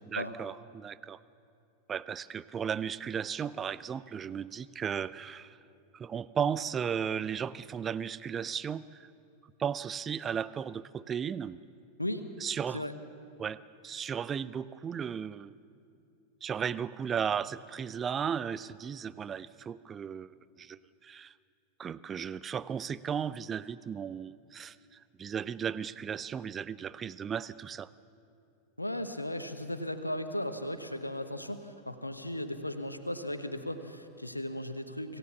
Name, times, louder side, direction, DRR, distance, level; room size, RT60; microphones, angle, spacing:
voice 1, 0.1-1.2 1.9-5.6 5.9-9.1 9.6-11.6 12.4-12.8 13.4-13.6 13.8-15.5 16.4-20.3 20.6-21.3 21.8-27.9, right 7 dB, 20° right, 17 dB, 0.5 m, -35 dB
voice 2, 28.8-35.2, left 1 dB, 85° left, 9 dB, 1.1 m, -36 dB
26.0 x 16.0 x 7.1 m, 2.6 s
figure-of-eight pair, 90°, 0 cm